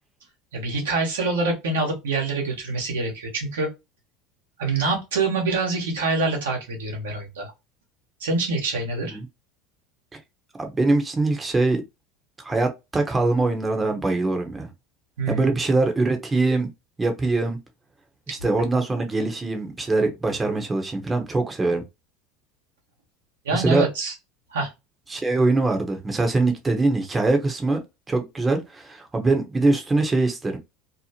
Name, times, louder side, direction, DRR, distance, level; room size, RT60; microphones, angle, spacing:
voice 1, 0.5-3.7 4.6-7.5 8.2-9.2 15.2-15.4 18.3-18.4 23.4-24.1 24.5-24.7, right 3 dB, 85° right, 1.1 m, -25 dB
voice 2, 10.6-11.8 12.4-14.7 15.3-16.7 17.0-17.6 18.3-21.8 23.5-23.9 25.1-27.8 28.1-30.6, right 3 dB, 20° right, 0.8 m, -23 dB
2.8 x 2.0 x 2.9 m
hypercardioid pair, 85°, 0 cm